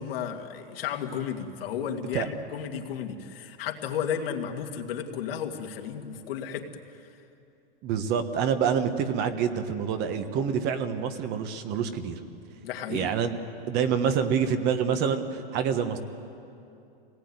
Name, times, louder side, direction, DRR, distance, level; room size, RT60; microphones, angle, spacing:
voice 1, 0.0-6.8 12.6-13.1, left 8 dB, 70° left, 3 dB, 2.3 m, -33 dB
voice 2, 7.8-12.2 12.9-13.4 13.7-16.0, right 7 dB, 35° right, 8 dB, 1.4 m, -27 dB
25.5 x 18.5 x 9.6 m, 2.7 s
supercardioid pair, 150°, 30 cm